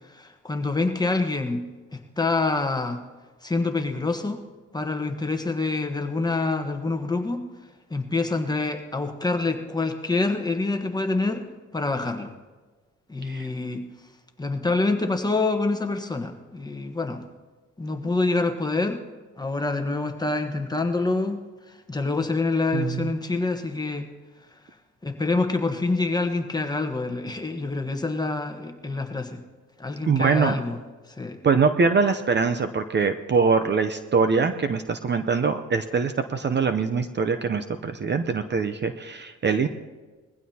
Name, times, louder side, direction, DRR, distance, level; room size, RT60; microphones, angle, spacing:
voice 1, 0.1-1.6 1.9-3.0 3.4-4.4 4.7-7.4 7.9-11.5 11.7-12.3 13.1-13.8 14.4-17.2 17.8-19.0 19.4-21.4 21.9-24.1 25.0-29.4 29.8-30.8 31.2-31.4, left 3 dB, 15° left, 5 dB, 1.2 m, -26 dB
voice 2, 22.7-23.1 30.1-30.6 31.4-39.7, right 5 dB, 35° right, 8 dB, 0.7 m, -23 dB
21.0 x 15.5 x 2.9 m, 1.3 s
cardioid pair, 90°, 30 cm